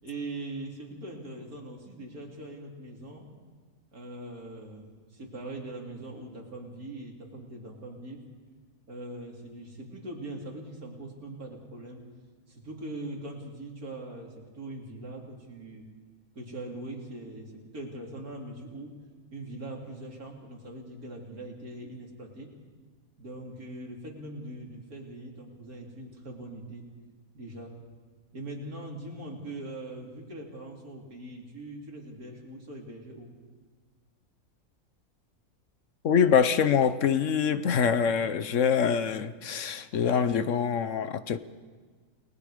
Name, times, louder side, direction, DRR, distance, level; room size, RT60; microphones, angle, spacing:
voice 1, 0.0-3.3 3.9-8.2 8.9-12.0 12.5-15.9 16.3-18.9 19.3-22.5 23.2-26.8 27.3-27.7 28.3-33.3, right 2 dB, 85° right, -1 dB, 3.7 m, -41 dB
voice 2, 36.0-41.4, left 7 dB, 60° left, 12 dB, 1.1 m, -25 dB
29.5 x 20.0 x 5.0 m, 1.5 s
omnidirectional pair, 1.5 m